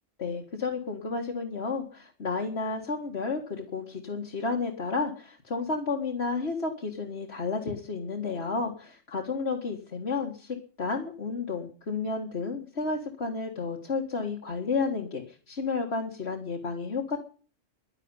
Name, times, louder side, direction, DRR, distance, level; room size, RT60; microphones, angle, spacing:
voice 1, 0.2-17.2, left 4 dB, 55° left, 1 dB, 2.1 m, -32 dB
11.5 x 11.0 x 9.7 m, 0.40 s
omnidirectional pair, 1.3 m